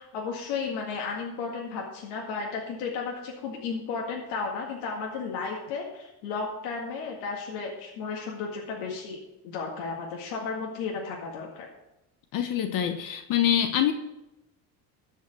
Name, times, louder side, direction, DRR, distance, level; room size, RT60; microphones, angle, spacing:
voice 1, 0.0-9.2 9.4-11.7, left 5 dB, 85° left, -1 dB, 2.0 m, -34 dB
voice 2, 12.3-13.9, left 10 dB, 60° left, 8 dB, 1.0 m, -25 dB
13.0 x 5.7 x 6.1 m, 0.92 s
cardioid pair, 120°, 39 cm